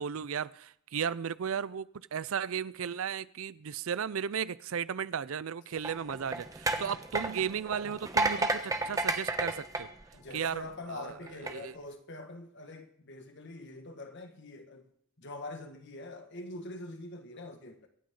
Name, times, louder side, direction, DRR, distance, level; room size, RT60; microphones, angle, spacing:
voice 1, 0.0-9.9 10.3-10.6 10.9-11.1 11.4-11.7, right 7 dB, 75° right, 0.5 m, -35 dB
sound 1, 5.8-10.7 11.3-11.5, right 2 dB, 15° right, 1.1 m, -32 dB
voice 2, 10.1-14.9 15.2-17.9, left 2 dB, 55° left, 1.8 m, -44 dB
25.0 x 8.7 x 3.8 m
head